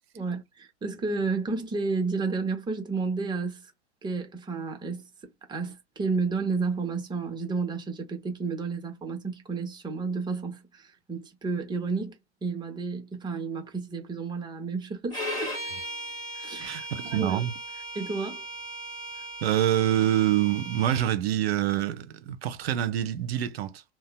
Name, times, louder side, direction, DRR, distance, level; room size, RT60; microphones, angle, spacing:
voice 1, 0.2-3.7 4.0-12.1 12.4-15.5 16.3-16.8 17.0-17.5 17.9-18.4, right 4 dB, 15° right, 0.9 m, -31 dB
Bowed string instrument, 15.1-21.1, right 1 dB, 10° left, 1.6 m, -37 dB
voice 2, 16.6-17.5 19.4-23.8, right 12 dB, 65° right, 0.7 m, -26 dB
2.8 x 2.1 x 2.2 m
figure-of-eight pair, 100°, 34 cm